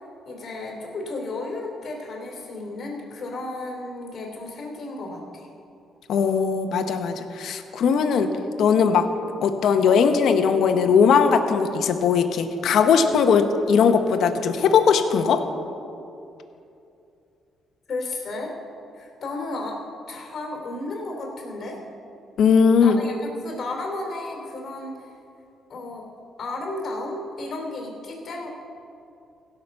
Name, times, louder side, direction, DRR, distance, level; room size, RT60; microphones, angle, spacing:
voice 1, 0.2-5.5 17.9-18.5 18.9-19.8 20.1-21.8 22.8-25.1 25.7-26.1 26.4-28.5, left 2 dB, 45° left, 0 dB, 2.9 m, -33 dB
voice 2, 6.1-8.3 8.6-9.1 9.4-15.4 22.4-23.0, left 6 dB, 70° left, 7 dB, 1.0 m, -19 dB
16.5 x 5.9 x 7.0 m, 2.7 s
cardioid pair, 90°, 0 cm